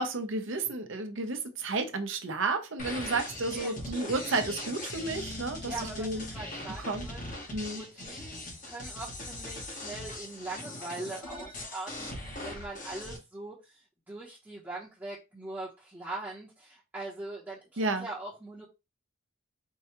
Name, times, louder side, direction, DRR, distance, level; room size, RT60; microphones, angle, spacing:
voice 1, 0.0-6.2 6.9-7.1 7.5-7.8 17.8-18.1, right 3 dB, 65° right, 0.7 m, -32 dB
sound 1, 2.8-13.2, left 1 dB, 35° left, 0.9 m, -40 dB
voice 2, 3.5-3.9 5.7-18.6, right 2 dB, 10° right, 0.9 m, -42 dB
4.6 x 2.3 x 2.9 m
head